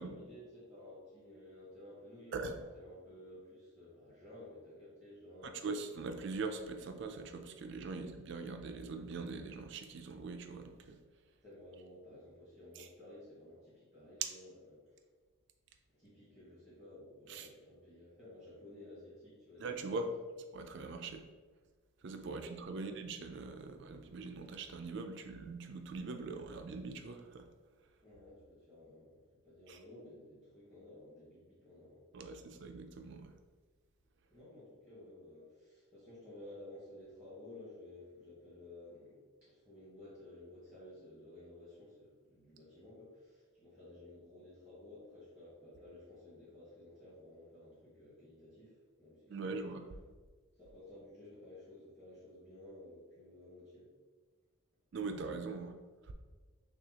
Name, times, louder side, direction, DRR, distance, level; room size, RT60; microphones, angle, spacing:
voice 1, 0.0-5.8 7.9-8.1 11.4-15.0 15.9-20.1 22.7-23.0 28.0-32.5 34.3-49.7 50.6-53.9, left 1 dB, 5° right, -9 dB, 1.3 m, -54 dB
voice 2, 5.4-11.0 17.3-17.5 19.6-20.1 20.5-21.2 22.0-27.4 29.7-29.8 32.1-33.3 49.3-49.9 54.9-55.7 56.1-56.2, right 3 dB, 55° right, 6 dB, 0.4 m, -42 dB
6.3 x 2.4 x 2.8 m, 1.4 s
head